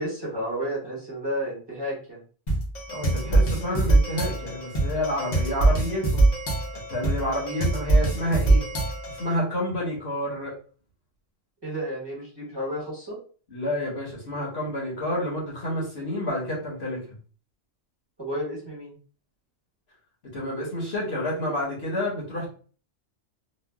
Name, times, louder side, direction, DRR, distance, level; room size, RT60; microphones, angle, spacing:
voice 1, 0.0-2.2 11.6-13.2 18.2-19.0, equal, 20° right, -6 dB, 1.2 m, -31 dB
sound 1, 2.5-9.3, right 2 dB, 40° left, 0.8 m, -23 dB
voice 2, 2.9-6.3 6.9-8.6 9.1-10.5 13.5-17.0 20.3-22.5, left 1 dB, 55° left, -4 dB, 1.3 m, -29 dB
3.1 x 2.3 x 2.3 m, 0.40 s
omnidirectional pair, 1.3 m